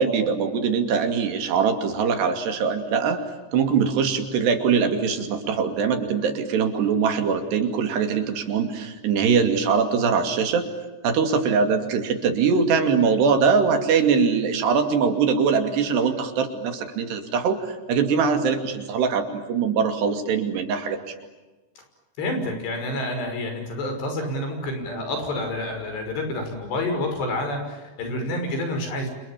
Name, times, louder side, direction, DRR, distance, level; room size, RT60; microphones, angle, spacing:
voice 1, 0.0-3.2 3.5-10.7 11.0-21.1, right 6 dB, 75° right, 6 dB, 4.7 m, -22 dB
voice 2, 22.2-29.1, left 1 dB, 75° left, 5 dB, 8.0 m, -28 dB
29.5 x 27.5 x 7.4 m, 1.2 s
omnidirectional pair, 4.9 m